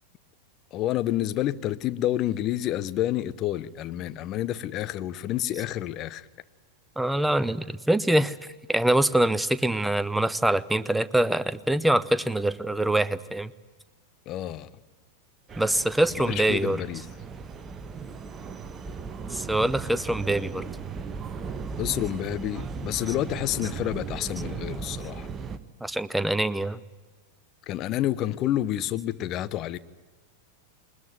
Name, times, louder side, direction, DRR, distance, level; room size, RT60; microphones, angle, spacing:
voice 1, 0.7-6.3 14.3-14.7 16.1-17.1 21.8-25.3 27.7-29.8, left 13 dB, 35° left, 0.9 m, -29 dB
voice 2, 7.0-8.4 8.7-13.5 15.6-16.8 19.3-20.7 25.8-26.8, right 1 dB, 5° right, 0.8 m, -24 dB
sound 1, 15.5-25.6, right 5 dB, 20° right, 1.3 m, -37 dB
21.5 x 20.5 x 9.4 m
figure-of-eight pair, 90°, 0 cm